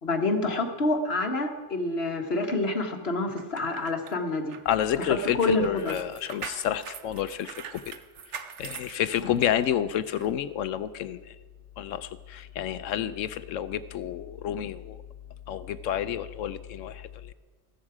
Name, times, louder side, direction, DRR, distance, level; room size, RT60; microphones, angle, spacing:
voice 1, 0.0-4.6 5.0-5.9, left 2 dB, 50° left, 4 dB, 1.5 m, -27 dB
sound 1, 3.4-9.7 10.1-10.3, right 7 dB, 65° right, 1.1 m, -42 dB
voice 2, 4.7-8.0 8.6-11.3 11.8-15.0 15.5-17.3, left 10 dB, 75° left, 13 dB, 0.9 m, -30 dB
15.5 x 13.5 x 4.8 m, 1.3 s
omnidirectional pair, 1.3 m